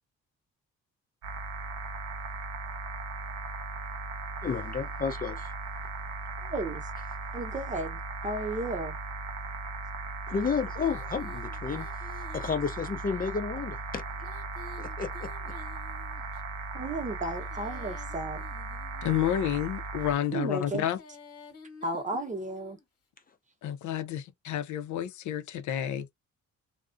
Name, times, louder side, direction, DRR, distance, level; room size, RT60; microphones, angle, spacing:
sound 1, 1.2-20.2, right 3 dB, 60° right, 0.7 m, -37 dB
voice 1, 4.4-5.5 10.3-11.9 12.3-14.0 14.8-15.5, left 6 dB, 30° left, 0.5 m, -32 dB
voice 2, 6.4-6.9 7.3-9.0 16.7-18.4 20.3-20.9 21.8-22.8, right 2 dB, 25° right, 0.8 m, -34 dB
Female singing, 10.8-13.0 14.1-16.4 17.2-19.3 20.6-22.8, left 4 dB, 50° left, 1.1 m, -51 dB
voice 3, 19.0-21.0 23.6-26.1, left 10 dB, 75° left, 0.5 m, -30 dB
2.3 x 2.1 x 2.5 m
cardioid pair, 90°, 30 cm